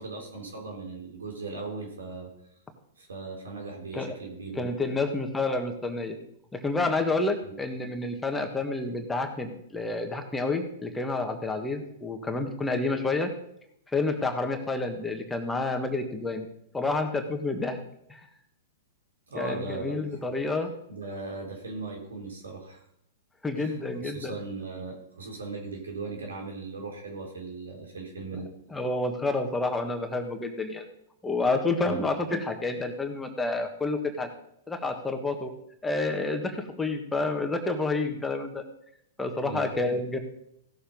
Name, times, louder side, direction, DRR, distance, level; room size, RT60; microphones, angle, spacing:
voice 1, 0.0-2.3 3.0-4.7 7.4-7.5 19.3-20.2 20.9-22.8 23.6-28.5 31.8-32.0 39.4-39.7, right 3 dB, 85° right, 1 dB, 4.1 m, -38 dB
voice 2, 4.5-6.2 6.5-13.3 13.9-16.5 16.7-17.8 18.1-18.2 19.4-20.7 23.4-24.3 28.7-30.8 31.2-34.3 34.7-35.5 35.8-38.6 39.2-40.2, left 3 dB, 10° left, 4 dB, 1.6 m, -29 dB
16.0 x 7.2 x 5.4 m, 0.75 s
hypercardioid pair, 115°, 0 cm